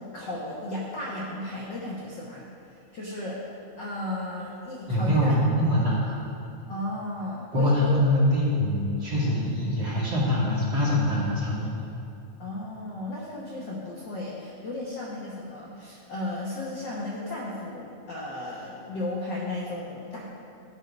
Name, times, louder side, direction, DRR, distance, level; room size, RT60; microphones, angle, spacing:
voice 1, 0.0-3.4 3.8-5.3 6.7-8.0 12.4-20.2, left 1 dB, 85° left, -4 dB, 0.9 m, -34 dB
voice 2, 4.9-6.2 7.5-11.8, left 1 dB, 40° right, -6 dB, 2.6 m, -24 dB
13.5 x 4.6 x 5.3 m, 2.6 s
omnidirectional pair, 3.7 m